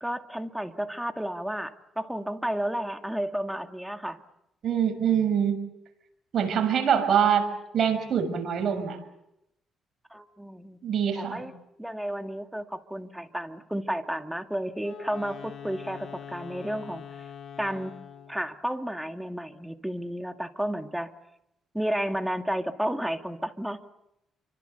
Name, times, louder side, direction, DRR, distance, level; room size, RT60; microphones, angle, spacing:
voice 1, 0.0-4.2 10.1-10.8 11.2-11.5 11.8-17.1 17.6-17.9 18.3-21.1 21.7-23.9, equal, 5° right, 6 dB, 2.2 m, -32 dB
voice 2, 4.6-5.6 6.3-7.4 7.7-9.0 10.8-11.5, right 8 dB, 60° right, 6 dB, 6.3 m, -24 dB
Wind instrument woodwind instrument, 14.8-18.5, left 7 dB, 55° left, 4.7 m, -43 dB
29.0 x 25.0 x 7.0 m, 0.85 s
cardioid pair, 90°, 0 cm